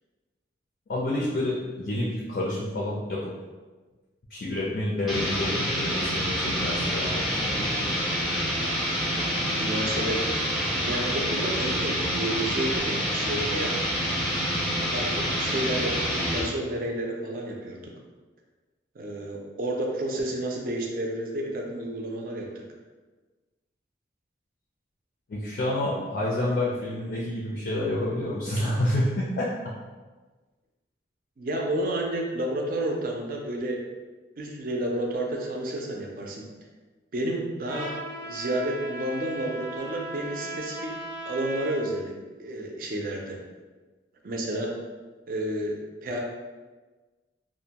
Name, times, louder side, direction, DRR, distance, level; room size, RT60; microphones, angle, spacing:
voice 1, 0.9-3.3 4.3-7.7 25.3-29.7, left 1 dB, 55° left, -5 dB, 0.4 m, -29 dB
sound 1, 5.1-16.5, equal, ahead, 0.5 m, -27 dB
voice 2, 9.6-10.3 10.7-13.7 14.9-17.9 19.0-22.5 31.4-33.8 34.4-36.4 37.1-37.9 38.2-40.9 41.2-42.1 42.4-43.4 44.2-44.7 45.3-46.2, right 1 dB, 50° right, 1 dB, 0.4 m, -31 dB
Trumpet, 37.7-41.9, right 2 dB, 85° right, 0.6 m, -37 dB
2.5 x 2.1 x 2.8 m, 1.3 s
head